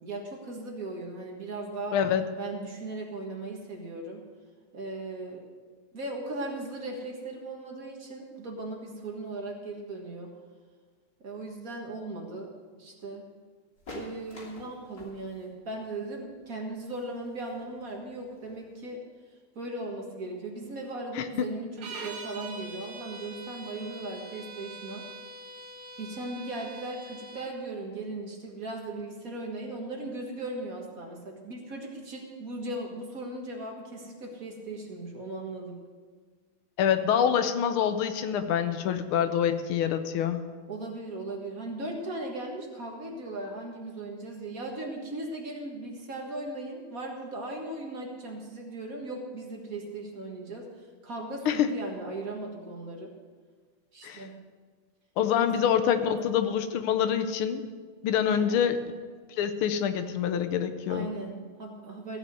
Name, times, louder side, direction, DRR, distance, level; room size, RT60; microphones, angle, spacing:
voice 1, 0.0-2.0 2.4-4.3 4.7-5.4 5.9-10.3 11.2-12.5 12.8-13.3 13.9-19.0 19.6-25.1 26.0-35.8 40.7-53.1 53.9-54.4 55.4-55.5 56.0-56.2 58.3-58.6 60.9-62.2, right 2 dB, 45° right, 0 dB, 1.9 m, -38 dB
voice 2, 1.9-2.2 21.2-21.3 36.8-40.4 51.5-51.7 54.0-54.2 55.2-57.7 58.0-58.8 59.4-61.1, left 8 dB, 85° left, 10 dB, 1.7 m, -26 dB
sound 1, 13.8-19.0, left 2 dB, 45° left, 3.4 m, -48 dB
sound 2, 21.8-27.5, right 2 dB, 75° right, 2.1 m, -43 dB
15.0 x 6.1 x 7.9 m, 1.5 s
omnidirectional pair, 2.3 m